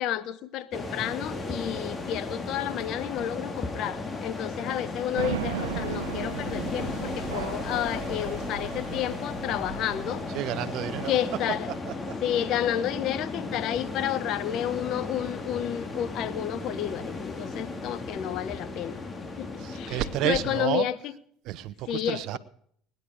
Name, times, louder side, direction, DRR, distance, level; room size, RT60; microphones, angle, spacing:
voice 1, 0.0-10.2 11.0-11.7 12.2-19.0 19.4-21.0 21.9-22.4, left 11 dB, 60° left, 0.9 m, -31 dB
sound 1, 0.7-20.6, left 3 dB, 25° left, 2.2 m, -35 dB
sound 2, 5.1-10.5, right 8 dB, 90° right, 1.1 m, -36 dB
voice 2, 10.3-11.1 19.6-20.9 21.4-22.4, right 14 dB, 65° right, 0.7 m, -30 dB
19.0 x 10.5 x 4.9 m
hypercardioid pair, 75°, 0 cm